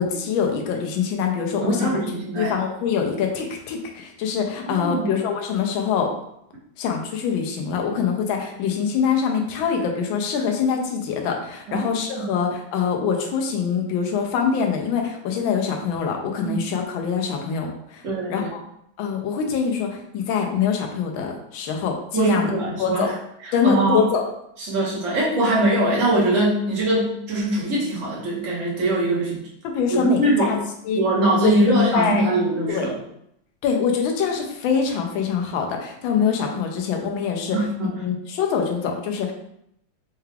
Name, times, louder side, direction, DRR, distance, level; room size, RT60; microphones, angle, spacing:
voice 1, 0.0-1.9 2.4-6.1 6.8-18.0 18.3-18.6 19.0-22.5 22.8-23.1 23.5-24.2 29.6-30.2 30.5-30.6 30.8-31.0 31.4-31.5 31.9-32.2 32.7-32.9 33.6-37.6 38.0-39.3, left 6 dB, 85° left, 2 dB, 1.4 m, -24 dB
voice 2, 1.6-2.6 4.6-5.1 11.7-11.9 12.2-12.3 16.4-16.6 18.0-18.5 22.1-23.1 23.4-24.0 24.6-29.4 29.9-30.6 31.0-33.0 37.5-37.9, right 1 dB, 50° right, -4 dB, 1.2 m, -22 dB
4.5 x 2.3 x 3.2 m, 0.75 s
omnidirectional pair, 2.1 m